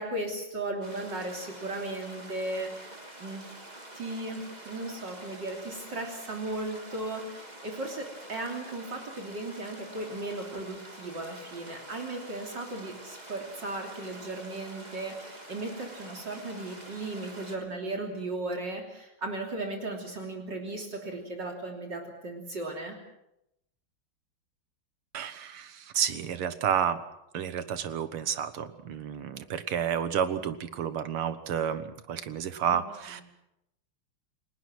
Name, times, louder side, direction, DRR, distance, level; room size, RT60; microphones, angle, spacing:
voice 1, 0.0-2.9 3.2-3.5 3.9-23.0 32.7-32.8 33.1-33.2, right 2 dB, 55° right, 1 dB, 3.8 m, -36 dB
sound 1, 0.8-17.6, right 1 dB, 20° right, 2.8 m, -47 dB
voice 2, 25.1-27.0 27.3-33.2, right 8 dB, 85° right, 12 dB, 2.2 m, -30 dB
29.5 x 19.5 x 6.1 m, 0.83 s
omnidirectional pair, 2.3 m